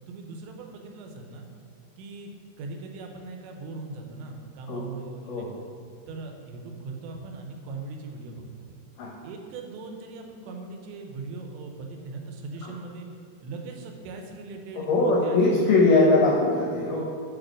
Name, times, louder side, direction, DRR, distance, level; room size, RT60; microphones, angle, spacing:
voice 1, 0.1-1.5 2.0-2.3 2.6-5.5 6.1-8.7 9.2-13.1 13.4-16.0, right 3 dB, 90° right, 3 dB, 3.1 m, -39 dB
voice 2, 14.9-17.0, left 2 dB, 80° left, -3 dB, 1.9 m, -21 dB
6.9 x 5.1 x 6.1 m, 2.3 s
omnidirectional pair, 5.0 m